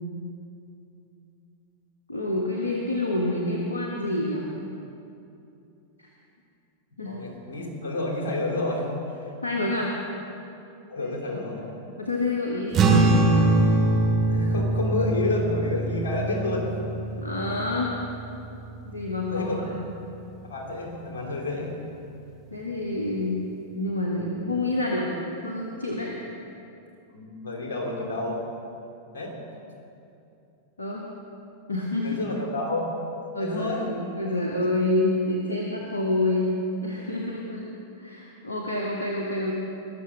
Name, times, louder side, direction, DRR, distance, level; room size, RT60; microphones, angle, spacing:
voice 1, 2.1-4.5 6.0-6.1 7.0-7.2 9.4-9.9 11.0-11.1 12.0-13.2 17.2-18.0 18.9-19.5 19.7-19.8 22.5-23.4 23.7-25.1 25.4-26.1 30.8-31.0 31.7-32.2 33.3-36.5 36.8-37.6 38.0-39.5, left 2 dB, 85° left, -1 dB, 1.4 m, -28 dB
voice 2, 7.0-8.9 9.2-9.3 10.9-11.7 14.3-16.7 19.3-19.6 20.4-21.7 27.1-28.4 29.1-29.3 32.0-32.9 33.4-33.8, left 2 dB, 70° left, 0 dB, 3.5 m, -29 dB
sound 1, 12.7-19.4, right 2 dB, 35° right, 2.2 m, -23 dB
21.0 x 7.1 x 6.5 m, 2.7 s
figure-of-eight pair, 95°, 0 cm